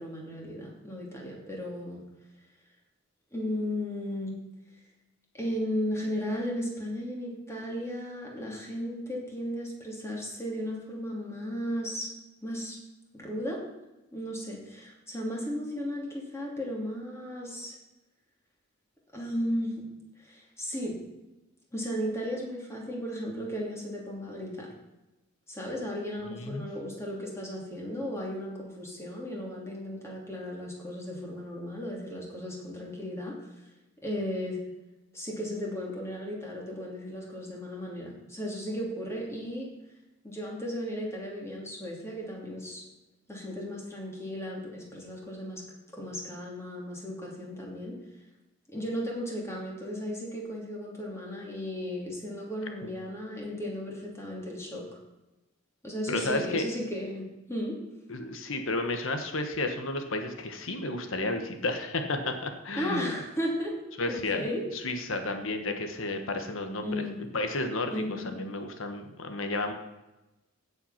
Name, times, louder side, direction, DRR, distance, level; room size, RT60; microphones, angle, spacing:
voice 1, 0.0-2.0 3.3-4.4 5.3-12.1 12.4-12.8 13.1-13.6 14.1-17.8 19.1-19.9 20.2-21.0 21.7-24.7 25.5-33.4 34.0-34.6 35.1-39.7 40.2-42.8 43.3-45.6 45.9-48.0 48.7-54.8 55.8-57.7 62.7-63.7 64.1-64.6 66.8-67.2 67.9-68.3, equal, 15° left, -2 dB, 2.8 m, -35 dB
voice 2, 26.2-26.7 52.8-52.9 56.1-56.6 58.1-63.2 64.0-64.5 64.7-67.1 67.3-69.7, left 2 dB, 70° left, 6 dB, 1.3 m, -32 dB
16.0 x 5.7 x 5.8 m, 1.0 s
head